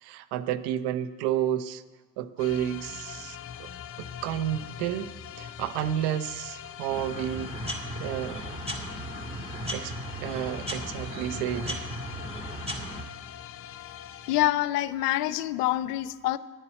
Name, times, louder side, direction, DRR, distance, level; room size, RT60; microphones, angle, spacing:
voice 1, 0.0-1.8 2.2-3.7 4.0-5.1 5.4-7.5 8.0-8.5 9.7-9.9 10.2-11.9, right 11 dB, 50° right, 12 dB, 0.8 m, -31 dB
sound 1, 2.4-14.5, left 9 dB, 30° left, 0.6 m, -42 dB
sound 2, 6.9-13.0, equal, 10° right, 2.1 m, -36 dB
voice 2, 14.3-16.4, left 14 dB, 70° left, 17 dB, 0.6 m, -26 dB
10.5 x 6.8 x 8.2 m, 1.3 s
figure-of-eight pair, 60°, 50 cm